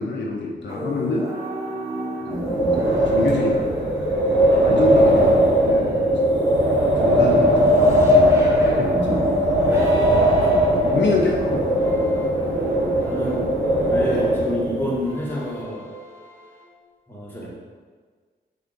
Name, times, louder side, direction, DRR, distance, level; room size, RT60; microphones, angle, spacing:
voice 1, 0.0-1.3 2.2-2.5 2.8-3.7 4.2-5.3 5.6-6.0 7.0-9.2 10.7-11.7 14.1-14.3, left 2 dB, 70° left, -2 dB, 0.5 m, -26 dB
sound 1, 0.7-16.6, equal, 15° right, 0.7 m, -34 dB
Wind, 2.3-14.9, equal, 85° right, 0.7 m, -19 dB
voice 2, 10.4-10.7 13.0-13.4 13.9-15.9 17.1-17.5, equal, 10° left, -5 dB, 0.9 m, -28 dB
3.6 x 2.3 x 3.8 m, 1.5 s
wide cardioid pair, 75°, 19 cm